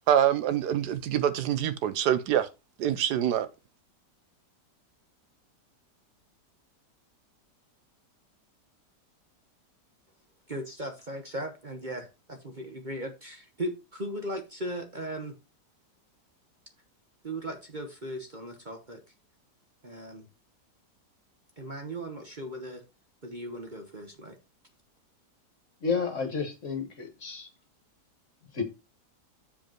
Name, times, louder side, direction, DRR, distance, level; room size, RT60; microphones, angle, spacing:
voice 1, 0.1-2.5 2.8-3.5, right 10 dB, 75° right, 1.2 m, -25 dB
voice 2, 10.5-15.3 17.2-19.0 19.8-20.3 21.6-22.8 23.2-24.4, right 1 dB, 35° right, 1.0 m, -37 dB
voice 3, 25.8-27.5 28.5-28.6, left 5 dB, 45° left, 1.8 m, -31 dB
7.2 x 5.1 x 4.4 m
omnidirectional pair, 1.8 m